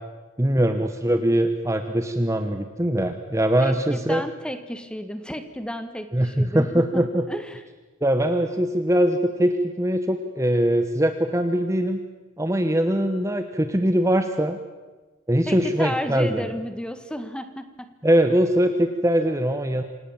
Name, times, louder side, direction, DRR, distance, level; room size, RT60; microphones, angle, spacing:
voice 1, 0.4-4.2 6.1-7.2 8.0-12.0 12.4-14.6 15.3-16.4 18.0-19.8, right 1 dB, 15° right, 8 dB, 1.0 m, -22 dB
voice 2, 3.6-7.0 7.3-7.6 15.5-17.9, equal, 5° left, 9 dB, 1.5 m, -32 dB
27.0 x 18.5 x 7.2 m, 1.3 s
head